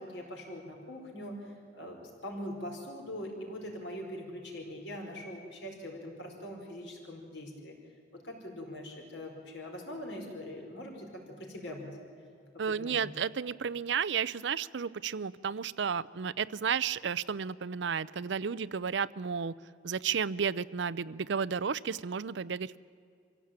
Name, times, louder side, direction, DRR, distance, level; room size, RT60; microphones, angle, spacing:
voice 1, 0.0-7.7 8.1-12.0 12.7-13.1, left 1 dB, 70° left, 1 dB, 4.7 m, -42 dB
voice 2, 12.6-19.5 19.8-22.8, right 6 dB, 70° right, 18 dB, 0.5 m, -32 dB
25.0 x 16.0 x 8.8 m, 2.3 s
head